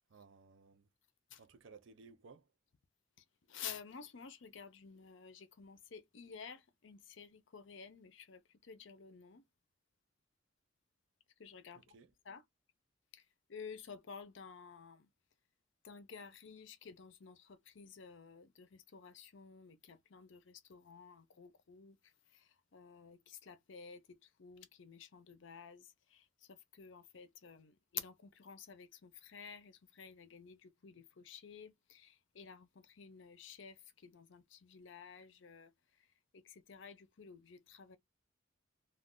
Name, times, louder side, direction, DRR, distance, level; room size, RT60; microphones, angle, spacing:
voice 1, 0.1-0.9 1.4-2.5 11.8-12.1, right 4 dB, 65° right, 0.5 m, -59 dB
voice 2, 3.5-9.4 11.4-12.0 12.2-12.4 13.1-13.2 13.5-15.1 15.8-22.0 22.3-35.7 36.3-38.0, left 7 dB, 65° left, 0.6 m, -52 dB
2.4 x 2.3 x 3.7 m
head